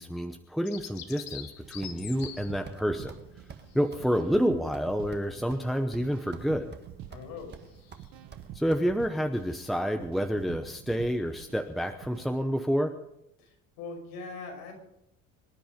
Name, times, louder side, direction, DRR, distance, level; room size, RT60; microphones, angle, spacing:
voice 1, 0.0-3.2 3.7-6.7 8.5-12.9, equal, ahead, 5 dB, 0.9 m, -29 dB
Bird vocalization bird call bird song, 0.6-8.5, left 10 dB, 65° left, 1.8 m, -48 dB
sound 1, 1.6-12.3, right 11 dB, 70° right, 1.5 m, -48 dB
sound 2, 1.8-2.4 2.7-2.8 3.1-3.2 3.5-3.7 3.9-4.1 4.3-5.7 5.9-6.5 6.7-7.3 7.5-8.8, right 6 dB, 30° right, 1.4 m, -46 dB
voice 2, 7.1-7.6 13.4-14.7, left 4 dB, 90° left, 2 dB, 5.6 m, -41 dB
25.0 x 10.0 x 5.2 m, 0.82 s
cardioid pair, 130°, 36 cm